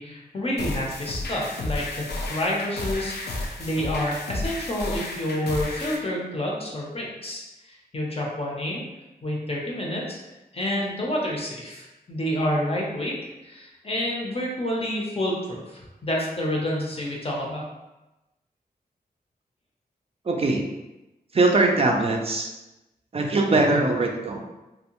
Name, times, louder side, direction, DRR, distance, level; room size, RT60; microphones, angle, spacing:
voice 1, 0.0-8.9 9.2-10.2 10.5-13.2 13.4-17.7, left 1 dB, 35° left, -2 dB, 0.5 m, -29 dB
sound 1, 0.6-6.0, left 2 dB, 85° left, 0.4 m, -32 dB
voice 2, 20.3-20.7 21.3-22.5 23.1-24.4, right 2 dB, 35° right, 2 dB, 0.4 m, -21 dB
2.6 x 2.1 x 2.8 m, 1.0 s
wide cardioid pair, 115°, 16 cm